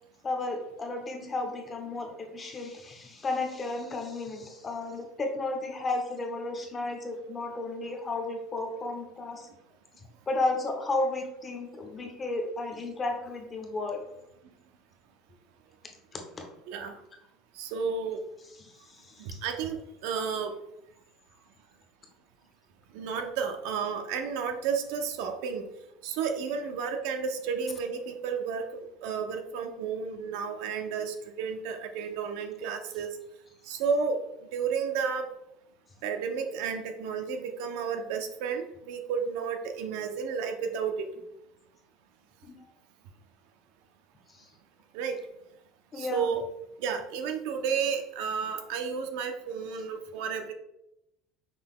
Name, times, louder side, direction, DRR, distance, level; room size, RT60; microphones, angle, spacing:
voice 1, 0.2-9.5 10.3-14.0 16.1-16.5 18.6-19.4 42.4-42.5 44.3-44.5 45.9-46.3, left 2 dB, 15° left, 3 dB, 0.6 m, -33 dB
voice 2, 17.6-18.2 19.2-19.8 20.0-20.5 22.9-25.6 26.0-33.1 33.7-34.2 34.5-35.3 36.0-41.1 44.9-45.2 46.0-46.4 46.8-50.5, right 6 dB, 60° right, 5 dB, 0.5 m, -32 dB
5.6 x 2.2 x 3.6 m, 0.84 s
cardioid pair, 175°, 0 cm